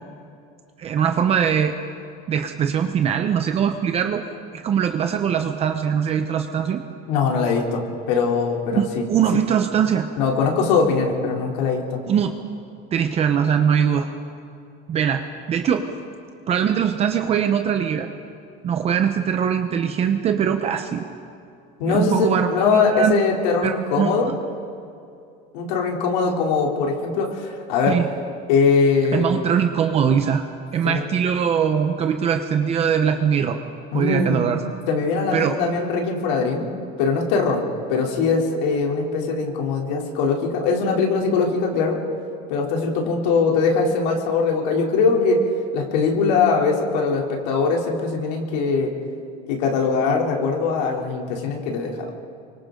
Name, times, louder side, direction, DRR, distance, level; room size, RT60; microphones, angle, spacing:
voice 1, 0.8-1.7 2.3-4.2 4.5-6.8 8.7-10.1 12.1-12.3 12.9-14.1 14.9-15.2 15.5-15.9 16.5-18.1 18.6-21.0 21.9-23.2 23.6-24.3 27.9-28.1 29.1-30.4 30.7-33.6 33.9-34.6 35.3-35.5, right 8 dB, 30° right, 6 dB, 0.9 m, -21 dB
voice 2, 7.1-9.0 10.2-12.0 21.8-24.3 25.5-28.0 28.5-29.4 30.8-31.0 33.9-34.5 34.9-36.7 37.0-37.6 37.9-42.0 42.5-45.4 45.7-48.9 49.5-52.1, left 4 dB, 90° left, 0 dB, 3.4 m, -21 dB
28.0 x 24.0 x 3.9 m, 2.5 s
cardioid pair, 160°, 21 cm